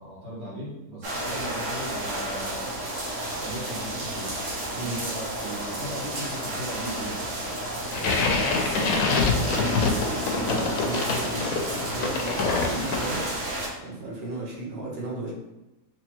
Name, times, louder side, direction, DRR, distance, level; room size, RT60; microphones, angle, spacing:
voice 1, 0.0-2.7 3.3-4.4 4.8-7.3 8.0-8.4, right 1 dB, 80° right, -7 dB, 1.9 m, -38 dB
sound 1, 1.0-13.7, right 1 dB, 65° right, 1.1 m, -32 dB
sound 2, 7.9-13.4, left 4 dB, 75° left, 1.0 m, -26 dB
voice 2, 8.5-13.3 13.8-15.3, right 2 dB, 50° right, -4 dB, 1.0 m, -35 dB
3.3 x 3.0 x 2.9 m, 1.0 s
omnidirectional pair, 1.5 m